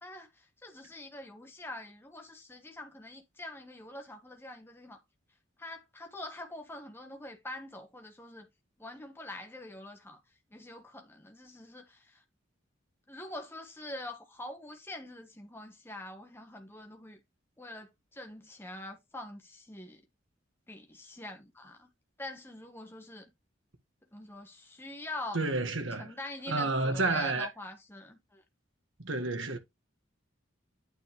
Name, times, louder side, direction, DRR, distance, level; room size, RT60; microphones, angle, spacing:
voice 1, 0.0-5.0 5.6-8.5 8.8-10.2 10.5-12.2 13.1-17.2 17.6-20.0 20.7-21.9 22.2-23.3 24.1-25.4 26.0-28.4, left 1 dB, 10° left, 1.3 m, -45 dB
voice 2, 25.3-26.1 26.5-27.5 29.0-29.6, right 3 dB, 75° right, 1.8 m, -30 dB
9.2 x 5.0 x 3.2 m
head